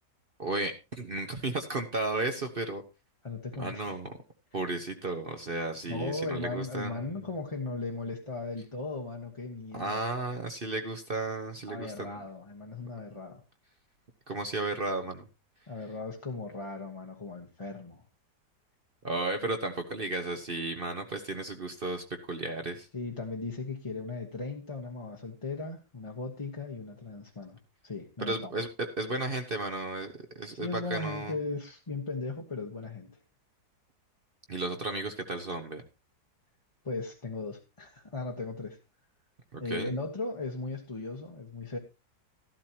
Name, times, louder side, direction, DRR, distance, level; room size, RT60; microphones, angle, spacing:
voice 1, 0.4-2.8 3.6-4.1 4.5-7.1 9.7-12.2 14.3-15.3 19.0-22.9 28.2-31.3 34.5-35.8 39.5-39.9, right 2 dB, 40° right, 1.0 m, -34 dB
voice 2, 3.2-4.0 5.9-10.0 11.7-13.4 15.7-18.0 22.9-28.5 30.6-33.1 36.8-38.8 39.6-41.8, left 3 dB, 20° left, 1.1 m, -37 dB
13.5 x 12.0 x 2.8 m
omnidirectional pair, 1.8 m